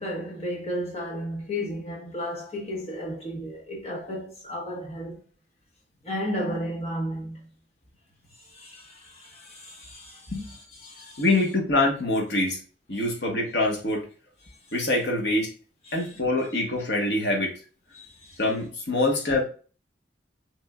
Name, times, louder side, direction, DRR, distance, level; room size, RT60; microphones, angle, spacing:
voice 1, 0.0-5.2 6.0-7.4 8.4-11.2 15.9-16.1 17.9-18.4, equal, 35° left, 1.3 m, -34 dB
voice 2, 11.2-12.6 12.9-14.1 14.7-15.5 15.9-17.6 18.4-19.4, left 2 dB, 70° left, 1.3 m, -24 dB
6.2 x 3.6 x 2.4 m
head